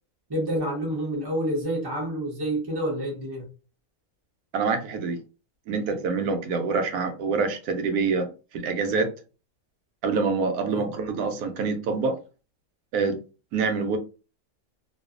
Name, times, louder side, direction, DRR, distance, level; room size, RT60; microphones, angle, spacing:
voice 1, 0.3-3.4 10.7-10.9, right 1 dB, 25° right, 0.6 m, -28 dB
voice 2, 4.5-5.2 5.7-8.3 8.5-9.1 10.0-12.2 12.9-13.2 13.5-14.0, right 4 dB, 85° right, 1.1 m, -26 dB
2.5 x 2.4 x 2.4 m
omnidirectional pair, 1.6 m